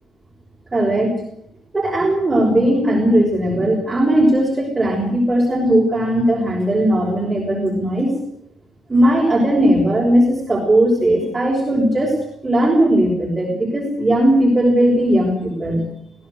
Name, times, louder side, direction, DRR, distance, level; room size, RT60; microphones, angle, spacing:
voice 1, 0.7-1.2 1.7-8.1 8.9-12.2 12.4-15.8, right 1 dB, 20° right, -2 dB, 6.0 m, -17 dB
21.5 x 17.0 x 8.0 m, 0.73 s
cardioid pair, 100°, 0 cm